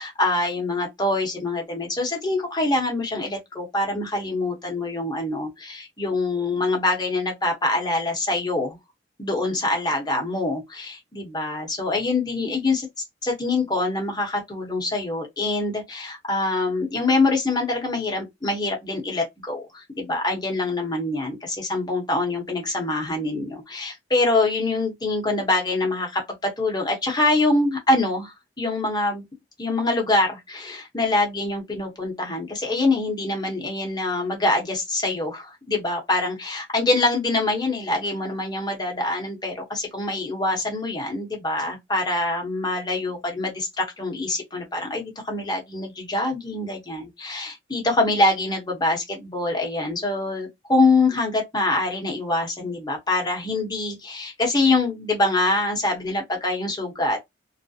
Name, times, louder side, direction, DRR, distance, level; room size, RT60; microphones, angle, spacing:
voice 1, 0.0-8.8 9.2-12.9 13.2-29.2 29.6-57.2, left 2 dB, 20° left, 0.8 m, -24 dB
2.3 x 2.0 x 2.6 m
head